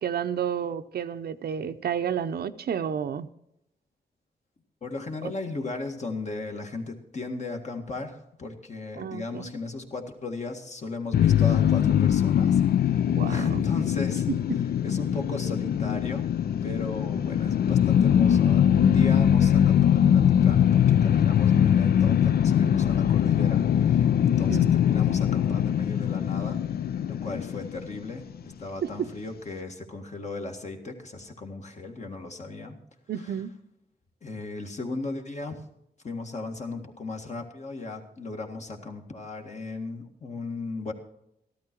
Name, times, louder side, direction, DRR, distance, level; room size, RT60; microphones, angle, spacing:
voice 1, 0.0-3.3 9.0-9.4 13.1-13.5 24.5-24.7 28.8-28.9 33.1-33.5, right 8 dB, 70° right, 10 dB, 0.6 m, -30 dB
voice 2, 4.8-14.3 14.8-16.3 16.6-26.8 27.1-32.8 33.2-33.3 34.2-35.6 36.0-40.9, left 3 dB, 45° left, 3 dB, 1.8 m, -36 dB
sound 1, 11.1-28.3, left 9 dB, 70° left, 0.4 m, -22 dB
13.5 x 12.5 x 4.5 m, 0.80 s
cardioid pair, 100°, 17 cm